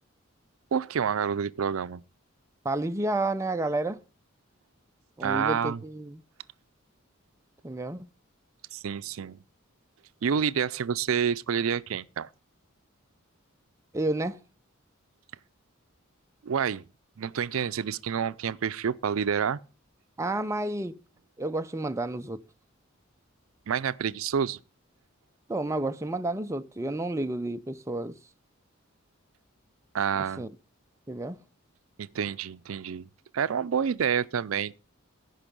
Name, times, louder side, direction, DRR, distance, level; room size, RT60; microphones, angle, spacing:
voice 1, 0.7-2.0 5.2-5.8 8.7-9.4 10.2-12.3 16.4-16.8 17.2-19.6 23.7-24.6 29.9-30.4 32.0-33.1 33.3-34.8, right 7 dB, 80° right, 0.5 m, -28 dB
voice 2, 2.6-4.0 5.2-6.2 7.6-8.1 13.9-14.4 20.2-21.0 21.4-22.4 25.5-28.2 30.4-30.5 31.1-31.4, right 2 dB, 15° right, 0.5 m, -30 dB
16.0 x 5.4 x 5.2 m
head